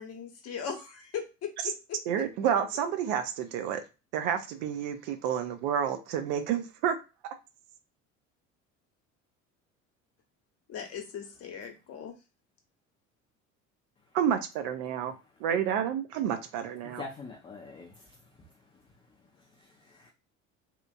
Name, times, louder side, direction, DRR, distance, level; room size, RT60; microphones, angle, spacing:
voice 1, 0.0-2.2 10.7-12.2, left 7 dB, 35° left, 4 dB, 0.9 m, -39 dB
voice 2, 2.1-3.8 4.1-7.0 14.1-15.1 15.4-17.0, right 9 dB, 50° right, 8 dB, 0.5 m, -29 dB
voice 3, 17.0-18.2 19.6-20.1, left 4 dB, 15° left, -1 dB, 0.4 m, -44 dB
2.9 x 2.4 x 2.3 m, 0.29 s
figure-of-eight pair, 60°, 40 cm